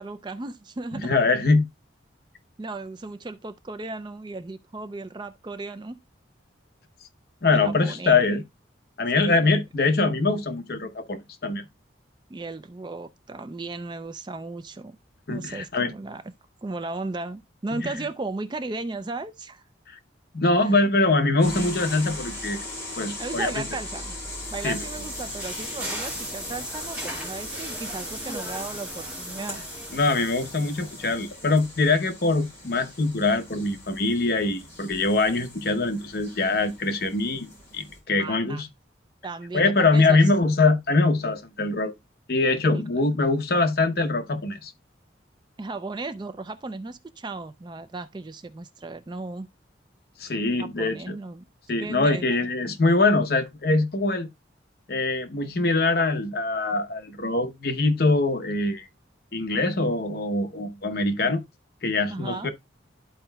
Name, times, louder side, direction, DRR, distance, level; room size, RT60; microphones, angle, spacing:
voice 1, 0.0-1.1 2.6-6.0 7.5-8.4 9.1-9.5 12.3-15.0 15.3-16.2 16.6-19.6 20.6-20.8 23.2-24.2 24.5-29.6 38.2-38.6 39.2-40.2 42.7-43.0 45.6-49.5 50.6-51.4 51.8-52.3 62.1-62.5, right 3 dB, 25° right, 0.3 m, -35 dB
voice 2, 0.9-1.6 7.4-8.4 9.0-11.6 15.3-15.9 17.8-17.9 19.9-20.0 20.3-22.6 23.0-23.6 24.6-24.8 29.9-38.7 39.5-41.9 42.3-44.7 50.2-51.2 51.7-54.3 54.9-58.9 59.3-61.4 61.8-62.5, left 3 dB, 55° left, 0.9 m, -23 dB
sound 1, 21.4-38.0, left 1 dB, 15° left, 3.4 m, -39 dB
sound 2, 23.9-31.5, right 1 dB, 5° right, 1.9 m, -37 dB
12.5 x 4.4 x 2.2 m
head